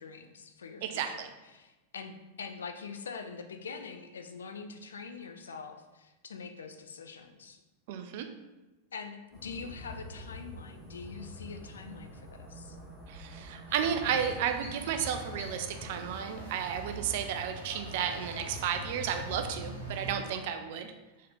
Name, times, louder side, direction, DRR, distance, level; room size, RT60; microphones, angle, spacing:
voice 1, 0.0-7.6 8.9-12.8 20.5-20.9, left 5 dB, 70° left, 7 dB, 0.4 m, -44 dB
voice 2, 0.8-1.3 7.9-8.3 13.1-20.9, right 8 dB, 50° right, 7 dB, 0.4 m, -33 dB
sound 1, 9.3-16.1, equal, 5° left, 1.2 m, -47 dB
sound 2, 13.7-20.1, right 1 dB, 80° right, 1.3 m, -43 dB
4.1 x 3.7 x 3.3 m, 1.1 s
figure-of-eight pair, 90°, 0 cm